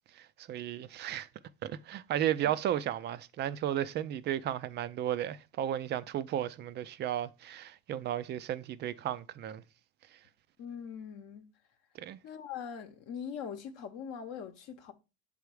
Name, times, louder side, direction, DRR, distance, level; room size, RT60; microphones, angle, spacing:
voice 1, 0.1-1.3 1.6-9.6 12.0-12.2, right 11 dB, 30° right, 0.4 m, -34 dB
voice 2, 10.6-11.5 12.2-14.9, left 7 dB, 50° left, 0.9 m, -42 dB
7.3 x 3.5 x 4.7 m
supercardioid pair, 105°, 34 cm